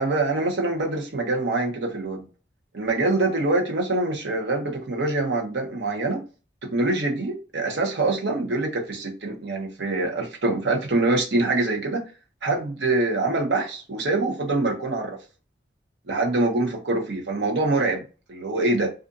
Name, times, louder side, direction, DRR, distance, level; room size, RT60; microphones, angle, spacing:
voice 1, 0.0-2.3 2.7-6.2 6.6-12.0 12.4-15.2 16.1-18.9, right 2 dB, 70° right, 0.8 m, -24 dB
2.5 x 2.4 x 2.5 m
head